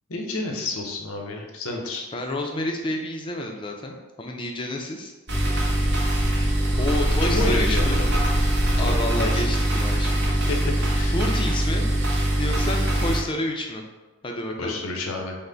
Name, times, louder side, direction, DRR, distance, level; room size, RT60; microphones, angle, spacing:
voice 1, 0.1-2.1 7.3-8.1 8.6-9.4 10.5-10.6 10.9-11.1 14.6-15.4, left 2 dB, 80° left, 2 dB, 0.7 m, -30 dB
voice 2, 2.1-5.1 6.8-8.1 8.8-10.4 11.1-11.9 12.4-13.8 14.2-14.8, left 1 dB, 25° left, 2 dB, 0.4 m, -29 dB
sound 1, 5.3-13.2, right 1 dB, 55° right, 1.1 m, -22 dB
5.4 x 2.1 x 3.8 m, 1.2 s
head